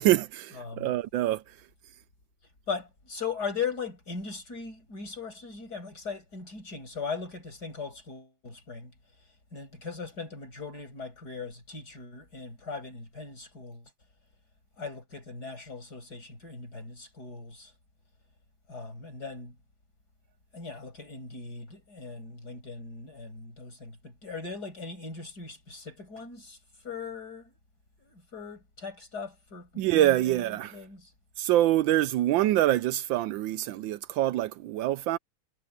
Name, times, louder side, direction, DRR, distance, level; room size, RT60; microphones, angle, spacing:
voice 1, 0.0-1.6 29.8-30.8 31.4-35.2, right 14 dB, 75° right, 1.3 m, -25 dB
voice 2, 0.6-0.9 2.7-8.9 9.5-13.9 14.8-17.7 18.7-19.6 20.5-26.6 26.8-27.5 28.0-31.1, left 5 dB, 50° left, 6.9 m, -39 dB
omnidirectional pair, 2.2 m